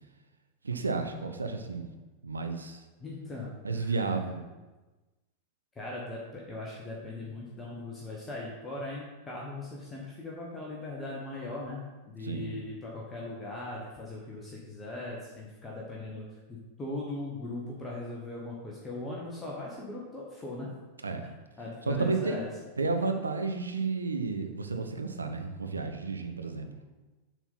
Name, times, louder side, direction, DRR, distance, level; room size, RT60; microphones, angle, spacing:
voice 1, 0.6-1.9 2.2-2.8 3.6-4.5 12.2-12.6 21.0-21.3 21.9-22.5 22.8-26.7, right 4 dB, 75° right, 5 dB, 0.7 m, -32 dB
voice 2, 3.0-3.9 5.8-20.7 21.6-22.5, left 2 dB, 15° left, -4 dB, 1.3 m, -39 dB
7.3 x 4.1 x 5.6 m, 1.2 s
figure-of-eight pair, 90°, 0 cm